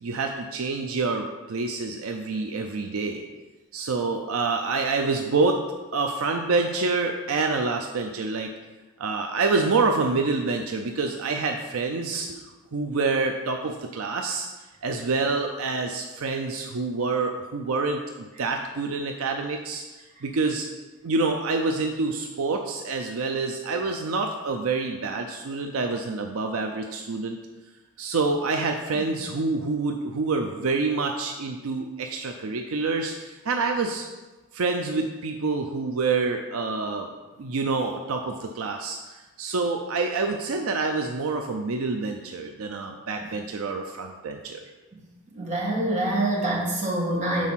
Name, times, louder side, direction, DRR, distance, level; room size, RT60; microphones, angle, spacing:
voice 1, 0.0-3.2 3.7-5.6 5.9-8.5 9.0-12.4 12.7-14.5 14.8-18.0 18.4-19.8 20.2-20.7 21.0-27.4 28.0-34.0 34.5-37.1 37.4-44.6, right 3 dB, 75° right, 4 dB, 0.5 m, -27 dB
voice 2, 45.3-47.5, right 1 dB, 30° right, -5 dB, 1.7 m, -25 dB
6.3 x 4.1 x 5.7 m, 1.2 s
head